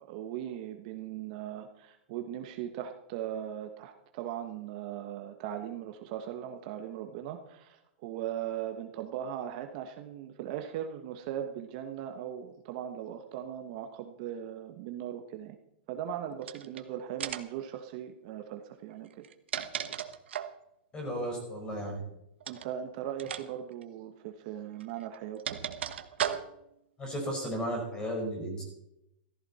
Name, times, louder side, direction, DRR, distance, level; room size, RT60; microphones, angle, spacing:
voice 1, 0.0-15.6 15.9-19.2 22.5-25.6, right 10 dB, 40° right, 5 dB, 1.3 m, -39 dB
sound 1, 16.4-16.8 17.2-17.6 19.1-20.6 22.4-22.7 23.2-23.4 23.7-23.8 24.8-26.7, right 9 dB, 85° right, 1.2 m, -36 dB
voice 2, 20.9-22.0 27.0-28.6, equal, 15° left, 1 dB, 4.9 m, -34 dB
15.0 x 14.5 x 4.3 m, 0.82 s
supercardioid pair, 160°, 6 cm